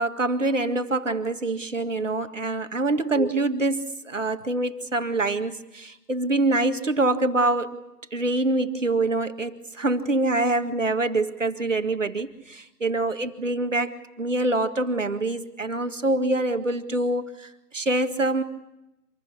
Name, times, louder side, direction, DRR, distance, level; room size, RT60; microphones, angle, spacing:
voice 1, 0.0-7.8 8.1-18.4, right 2 dB, 50° right, 7 dB, 2.0 m, -25 dB
26.5 x 22.0 x 8.4 m, 0.89 s
figure-of-eight pair, 165°, 48 cm